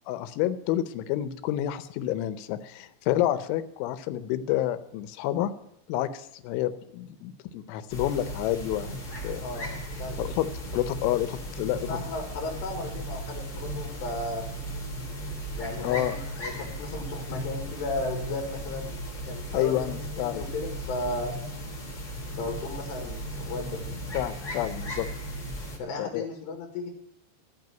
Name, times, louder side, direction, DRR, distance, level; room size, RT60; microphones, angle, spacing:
voice 1, 0.1-5.5 5.9-9.4 10.2-10.5 10.7-12.0 15.8-16.2 19.5-20.4 24.1-25.1 26.0-26.3, left 13 dB, 90° left, 13 dB, 3.2 m, -29 dB
sound 1, 7.9-25.8, right 1 dB, 35° left, 1.6 m, -36 dB
voice 2, 9.4-9.7 10.0-10.2 11.9-14.5 15.6-18.9 19.3-19.9 20.2-21.4 22.4-24.0 25.8-26.9, left 2 dB, 70° left, 1 dB, 3.8 m, -35 dB
13.5 x 5.6 x 9.1 m, 0.75 s
omnidirectional pair, 5.4 m